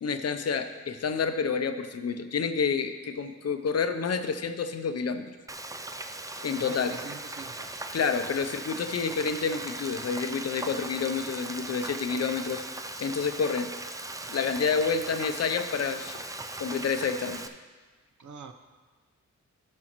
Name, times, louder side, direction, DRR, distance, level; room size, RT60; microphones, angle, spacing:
voice 1, 0.0-5.3 6.4-6.9 7.9-13.7 14.3-16.2 16.6-17.4, left 5 dB, 55° left, 9 dB, 0.6 m, -29 dB
Frying (food), 5.5-17.5, right 2 dB, 10° right, 0.3 m, -39 dB
voice 2, 6.6-7.5 18.2-18.5, right 5 dB, 75° right, 6 dB, 0.7 m, -42 dB
12.5 x 6.2 x 3.0 m, 1.4 s
wide cardioid pair, 125°, 30 cm